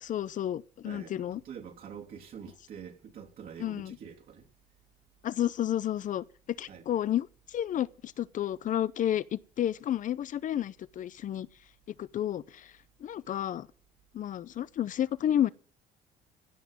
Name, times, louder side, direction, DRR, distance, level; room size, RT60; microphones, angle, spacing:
voice 1, 0.0-1.4 3.6-4.0 5.2-6.2 6.6-11.5 12.0-12.7 13.0-13.7 14.1-15.5, left 11 dB, 50° left, 0.7 m, -31 dB
voice 2, 0.8-4.5 6.7-7.0, right 7 dB, 60° right, 3.2 m, -46 dB
16.0 x 5.9 x 9.1 m
cardioid pair, 110°, 17 cm